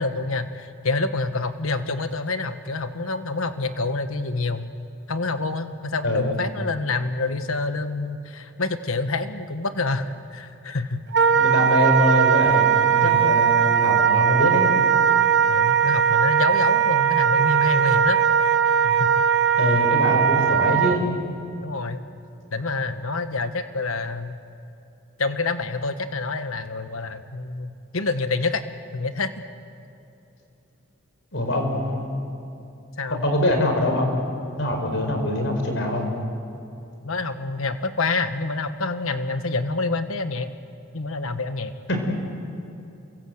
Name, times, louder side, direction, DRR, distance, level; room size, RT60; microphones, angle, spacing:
voice 1, 0.0-4.7 5.1-11.0 13.0-13.3 15.5-18.2 18.8-19.1 21.6-22.0 22.5-24.4 25.2-28.6 28.9-29.3 31.6-31.7 33.0-33.2 37.0-40.5 40.9-41.7, left 3 dB, 80° left, 9 dB, 1.3 m, -27 dB
Wind instrument woodwind instrument, 11.1-21.0, right 8 dB, 55° right, 1.0 m, -19 dB
voice 2, 11.3-14.7 19.6-21.0 31.3-32.1 33.2-34.2 34.5-36.1 41.9-42.1, left 1 dB, 60° left, 4 dB, 4.9 m, -23 dB
29.0 x 24.5 x 8.0 m, 2.9 s
head